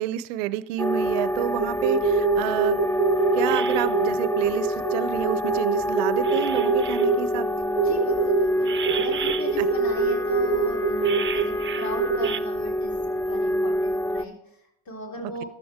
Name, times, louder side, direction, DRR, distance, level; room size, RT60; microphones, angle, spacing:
voice 1, 0.0-2.8 3.3-7.5 9.6-9.7 15.2-15.4, right 13 dB, 85° right, 17 dB, 0.6 m, -29 dB
sound 1, 0.8-14.2, equal, 5° left, 0.6 m, -27 dB
sound 2, 1.6-7.2 7.8-12.4, right 5 dB, 30° right, 0.7 m, -24 dB
voice 2, 7.8-15.5, left 1 dB, 70° left, 0 dB, 3.8 m, -38 dB
14.5 x 11.0 x 3.6 m, 0.78 s
hypercardioid pair, 55°, 37 cm